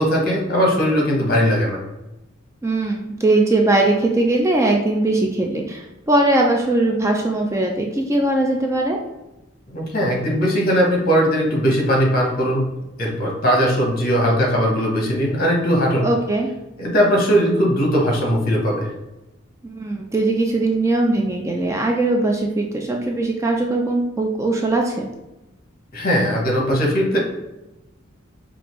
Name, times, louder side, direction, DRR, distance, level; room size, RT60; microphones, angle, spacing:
voice 1, 0.0-1.8 9.7-12.7 13.0-16.0 16.8-18.9 25.9-27.2, equal, 45° left, -1 dB, 1.0 m, -19 dB
voice 2, 2.6-9.0 16.0-16.5 19.6-25.1, right 2 dB, 15° right, 1 dB, 0.3 m, -20 dB
5.0 x 2.5 x 3.0 m, 0.98 s
head